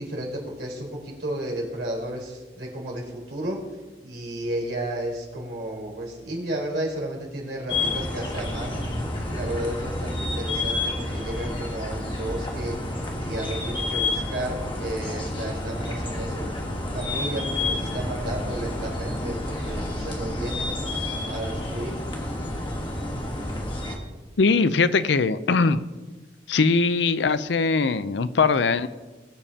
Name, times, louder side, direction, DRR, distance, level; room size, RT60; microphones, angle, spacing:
voice 1, 0.0-3.6 4.0-16.5 16.9-20.7 21.1-22.0, right 1 dB, 70° right, -2 dB, 3.8 m, -33 dB
sound 1, 7.7-24.0, left 2 dB, 25° left, 1.3 m, -30 dB
voice 2, 24.4-25.8 26.5-28.9, left 4 dB, 75° left, 14 dB, 0.5 m, -21 dB
20.5 x 7.2 x 2.8 m, 1.2 s
head